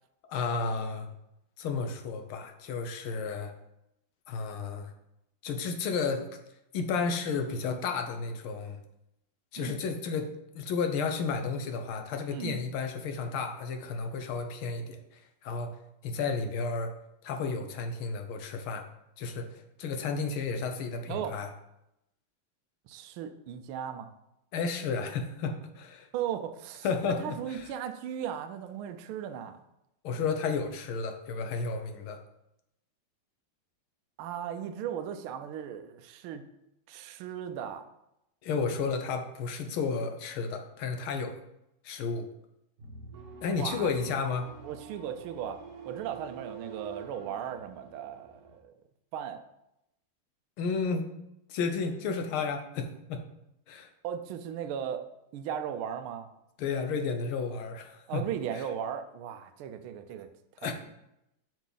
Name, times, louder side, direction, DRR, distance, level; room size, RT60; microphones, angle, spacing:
voice 1, 0.3-1.1 1.6-3.5 4.3-4.9 5.4-6.3 6.7-8.8 9.5-15.0 15.4-15.7 16.0-16.9 17.2-18.8 19.2-19.5 19.8-21.5 24.5-26.1 26.8-27.6 30.0-32.2 38.4-41.4 41.8-42.3 43.4-44.5 50.6-51.1 51.5-53.2 53.7-53.9 56.6-58.2 60.6-60.7, left 5 dB, 75° left, 6 dB, 1.7 m, -32 dB
voice 2, 12.3-12.6 21.1-21.4 22.9-24.1 26.1-26.9 27.2-29.6 34.2-36.4 36.9-37.9 43.5-43.9 44.6-48.7 49.1-49.4 54.0-56.3 58.1-60.7, right 9 dB, 75° right, 9 dB, 1.5 m, -37 dB
sound 1, 42.8-48.6, right 5 dB, 50° right, 1.4 m, -48 dB
7.3 x 6.7 x 3.9 m, 0.84 s
omnidirectional pair, 2.4 m